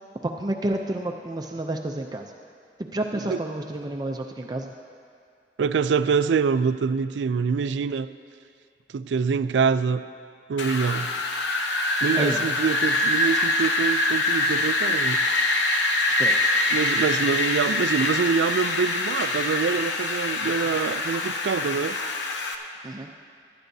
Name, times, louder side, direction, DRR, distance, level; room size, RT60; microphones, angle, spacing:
voice 1, 0.2-2.3 2.8-4.7 12.1-12.4 16.2-16.5 22.8-23.1, right 1 dB, 25° right, 2 dB, 0.4 m, -30 dB
voice 2, 5.6-8.1 8.9-10.0 10.5-11.1 12.0-15.2 16.7-22.0, right 5 dB, 85° right, 13 dB, 0.4 m, -25 dB
Wind, 10.6-22.5, left 2 dB, 85° left, 0.8 m, -24 dB
18.0 x 12.0 x 2.7 m, 2.3 s
head